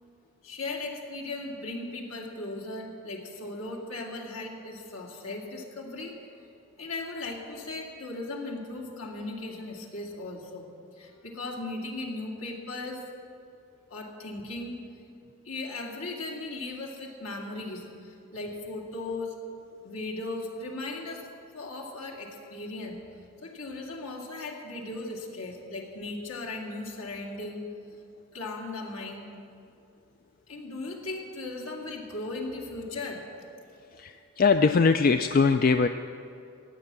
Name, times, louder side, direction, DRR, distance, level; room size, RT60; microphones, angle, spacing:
voice 1, 0.4-6.5 6.8-13.1 13.9-14.8 15.4-19.4 19.8-23.0 23.4-27.7 28.3-29.3 30.5-33.3, left 2 dB, 75° left, -1 dB, 2.2 m, -37 dB
voice 2, 33.9-35.9, left 4 dB, 40° left, 8 dB, 0.3 m, -22 dB
15.0 x 9.0 x 7.4 m, 2.5 s
head